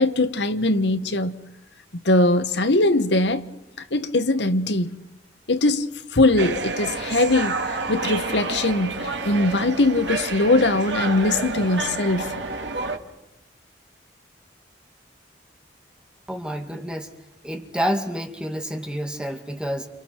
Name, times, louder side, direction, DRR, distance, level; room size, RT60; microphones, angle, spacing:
voice 1, 0.0-1.4 2.0-3.4 3.9-4.9 5.5-7.6 7.9-12.3, left 2 dB, 75° left, 1.3 m, -21 dB
sound 1, 6.4-13.0, right 3 dB, 85° right, 2.3 m, -29 dB
voice 2, 16.3-17.1 17.4-19.9, equal, 5° right, 1.9 m, -28 dB
30.0 x 29.5 x 4.6 m
head